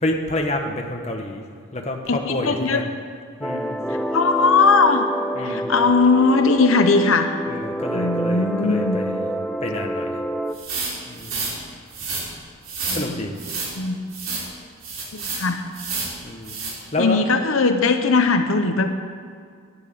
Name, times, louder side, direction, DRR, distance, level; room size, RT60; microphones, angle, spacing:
voice 1, 0.0-1.4 1.7-2.9 3.4-4.0 5.4-5.9 7.5-9.3 9.6-10.2 11.1-11.6 12.9-13.4 16.2-16.6 16.9-17.2, left 1 dB, 30° left, 2 dB, 1.3 m, -28 dB
voice 2, 2.1-2.8 4.1-5.0 5.4-7.3 7.9-9.0 12.9-13.2 13.7-14.0 15.1-15.6 17.0-18.9, left 4 dB, 85° left, 7 dB, 0.9 m, -19 dB
sound 1, 3.4-10.5, equal, 5° left, 0.3 m, -27 dB
sound 2, 10.5-11.5 11.9-12.2 12.6-13.0 13.4-13.7 14.1-14.4 14.8-15.4 15.7-16.1 16.4-16.7, right 4 dB, 85° right, 3.7 m, -29 dB
11.5 x 8.9 x 8.7 m, 2.2 s
head